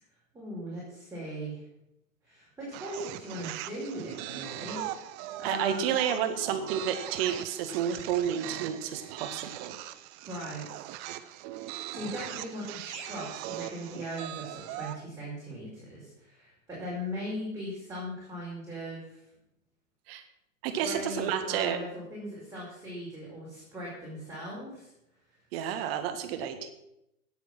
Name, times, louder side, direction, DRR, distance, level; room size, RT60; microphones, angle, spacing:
voice 1, 0.3-1.6 2.2-4.8 5.4-5.8 10.2-10.8 11.9-19.2 20.7-24.9, equal, 5° right, -7 dB, 5.1 m, -39 dB
sound 1, 2.7-15.0, right 14 dB, 25° right, 0.5 m, -40 dB
voice 2, 5.4-9.8 20.1-20.2 20.6-21.8 25.5-26.7, right 9 dB, 45° right, 8 dB, 1.8 m, -30 dB
17.5 x 7.0 x 6.2 m, 0.85 s
figure-of-eight pair, 100°, 41 cm